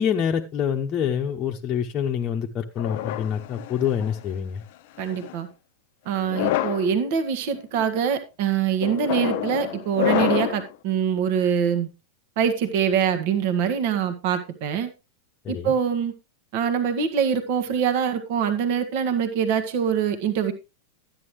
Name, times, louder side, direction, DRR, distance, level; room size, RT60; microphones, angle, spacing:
voice 1, 0.0-4.6 15.4-15.7, left 8 dB, 30° left, 1 dB, 0.9 m, -26 dB
sound 1, 2.8-4.2 5.0-5.4 6.2-6.9 7.5-7.9 8.8-10.7, left 14 dB, 50° left, 0.6 m, -27 dB
voice 2, 5.0-5.5 6.0-11.9 12.4-14.9 15.5-16.1 16.5-20.5, right 7 dB, 50° right, 9 dB, 1.4 m, -24 dB
12.5 x 9.3 x 3.2 m, 0.26 s
figure-of-eight pair, 90°, 0 cm